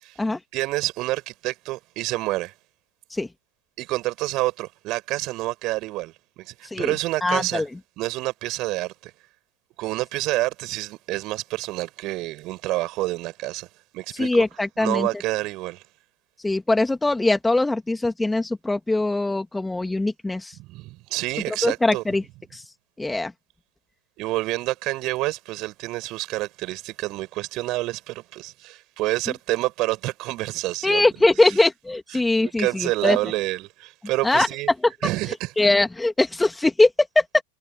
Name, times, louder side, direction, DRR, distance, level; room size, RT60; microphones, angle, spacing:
voice 1, 0.5-2.5 3.8-7.6 8.0-9.1 9.8-13.7 13.9-14.4 14.8-15.8 20.6-22.0 24.2-31.1 32.1-34.7 35.0-35.5, right 19 dB, 40° right, 5.5 m, -28 dB
voice 2, 7.2-7.7 14.1-15.1 16.4-20.6 21.6-22.2 22.5-22.6 23.0-23.3 30.8-33.2 34.2-34.5 35.6-37.4, left 2 dB, 5° left, 3.1 m, -21 dB
figure-of-eight pair, 90°, 0 cm